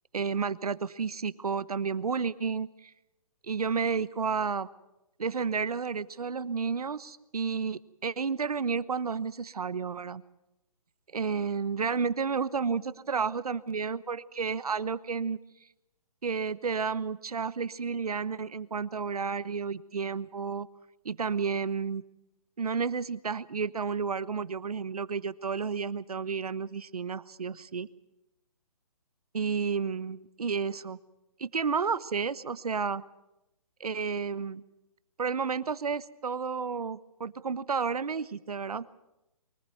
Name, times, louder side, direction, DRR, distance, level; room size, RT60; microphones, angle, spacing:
voice 1, 0.1-2.9 3.4-4.7 5.2-10.2 11.1-15.4 16.2-20.7 21.0-22.0 22.6-27.9 29.3-31.0 31.4-33.0 33.8-34.6 35.2-38.8, right 5 dB, 90° right, 17 dB, 1.1 m, -31 dB
23.5 x 15.0 x 9.3 m, 0.92 s
hypercardioid pair, 155°, 19 cm